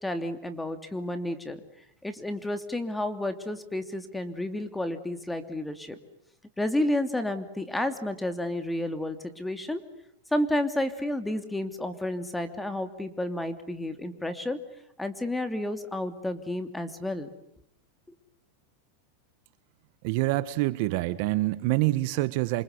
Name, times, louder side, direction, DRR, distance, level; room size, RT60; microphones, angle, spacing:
voice 1, 0.0-1.6 2.0-6.0 6.6-9.8 10.3-14.6 15.0-17.3, left 1 dB, 5° left, 9 dB, 2.9 m, -31 dB
voice 2, 20.0-22.6, right 18 dB, 55° right, 14 dB, 1.6 m, -26 dB
28.5 x 25.0 x 8.3 m, 0.72 s
supercardioid pair, 140°, 0 cm